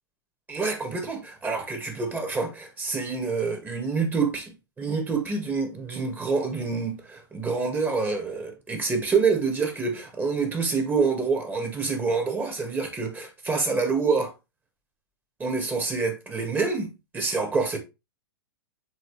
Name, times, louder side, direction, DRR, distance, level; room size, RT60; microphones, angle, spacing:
voice 1, 0.5-14.3 15.4-17.8, right 4 dB, 15° right, 1.8 m, -27 dB
7.9 x 4.0 x 3.3 m
hypercardioid pair, 120°, 13 cm